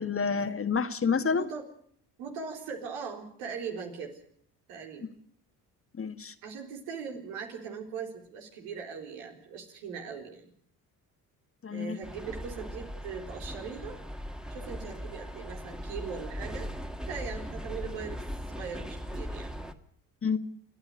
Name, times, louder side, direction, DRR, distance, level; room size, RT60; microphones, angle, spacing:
voice 1, 0.0-1.5 6.0-6.3 11.6-12.0 20.2-20.4, left 5 dB, 30° left, 10 dB, 1.7 m, -28 dB
voice 2, 1.3-1.6 2.2-4.2 4.7-5.0 6.4-10.5 11.7-14.0 14.5-16.7 17.1-18.2 18.5-19.5, right 6 dB, 85° right, 2 dB, 4.1 m, -40 dB
sound 1, 12.0-19.7, equal, ahead, 1.9 m, -39 dB
28.5 x 10.0 x 9.7 m, 0.64 s
supercardioid pair, 65°, 42 cm